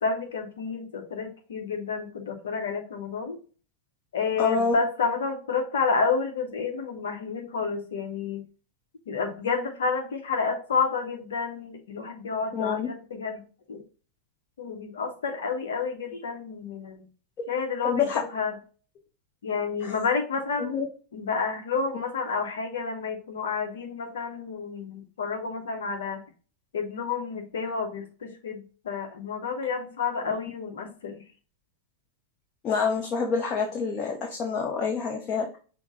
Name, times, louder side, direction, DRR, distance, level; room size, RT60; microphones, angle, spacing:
voice 1, 0.0-3.4 4.1-8.4 9.1-13.8 14.6-17.1 17.5-18.5 19.4-20.8 21.1-26.2 26.7-31.2, left 5 dB, 65° left, 4 dB, 0.9 m, -30 dB
voice 2, 4.4-4.8 12.5-12.9 17.8-18.2 19.8-19.9 20.6-20.9 30.3-30.4 32.6-35.6, left 5 dB, 30° left, 0 dB, 0.9 m, -27 dB
6.0 x 2.3 x 3.8 m, 0.38 s
figure-of-eight pair, 90°, 0 cm